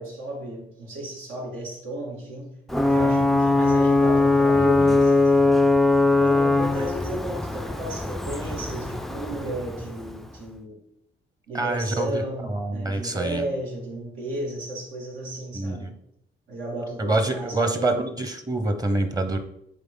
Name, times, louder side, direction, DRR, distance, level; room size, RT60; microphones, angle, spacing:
voice 1, 0.0-2.5 2.8-5.6 6.1-10.8 11.5-15.9 16.5-18.1, right 1 dB, 90° right, -3 dB, 2.3 m, -34 dB
Ocean / Boat Water vehicle / Alarm, 2.7-10.3, left 2 dB, ahead, 0.3 m, -21 dB
voice 2, 4.5-5.0 11.5-13.4 15.5-15.9 17.0-19.4, right 2 dB, 20° right, 8 dB, 0.8 m, -26 dB
7.5 x 4.0 x 3.8 m, 0.75 s
cardioid pair, 90°, 20 cm